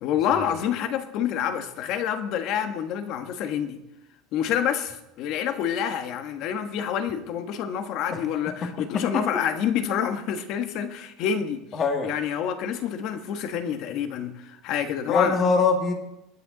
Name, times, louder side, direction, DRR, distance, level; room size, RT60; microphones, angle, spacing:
voice 1, 0.0-3.8 4.3-15.4, left 8 dB, 45° left, 1.2 m, -28 dB
voice 2, 11.7-12.1 15.1-15.9, left 4 dB, 25° left, 1.7 m, -23 dB
20.5 x 9.1 x 3.9 m
cardioid pair, 165°, 0 cm